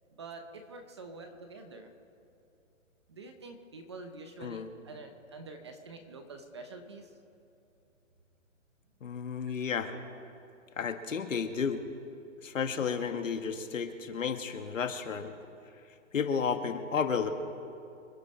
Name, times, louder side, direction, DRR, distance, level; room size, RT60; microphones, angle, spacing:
voice 1, 0.1-1.9 3.1-7.1, right 3 dB, 20° right, 6 dB, 0.8 m, -46 dB
voice 2, 9.0-9.9 10.8-11.8 12.4-15.3 16.1-17.3, left 6 dB, 75° left, 7 dB, 1.7 m, -32 dB
26.5 x 9.9 x 4.2 m, 2.6 s
hypercardioid pair, 170°, 39 cm